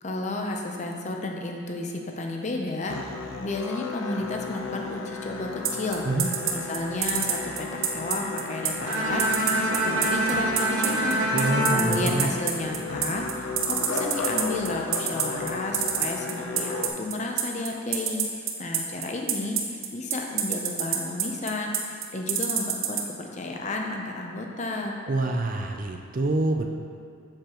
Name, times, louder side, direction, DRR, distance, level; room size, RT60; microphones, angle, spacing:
voice 1, 0.0-3.0 3.4-6.0 6.5-9.2 9.6-11.4 11.7-25.0, left 2 dB, 35° left, 1 dB, 0.6 m, -32 dB
Musical instrument, 2.9-16.9, left 4 dB, 80° left, 0.6 m, -34 dB
sound 1, 5.6-23.0, right 10 dB, 80° right, 0.7 m, -26 dB
Bowed string instrument, 8.8-13.0, right 1 dB, 60° right, 1.0 m, -26 dB
voice 2, 11.3-12.3 25.1-26.7, right 2 dB, 40° right, 3 dB, 0.4 m, -26 dB
7.5 x 6.7 x 3.0 m, 2.4 s
head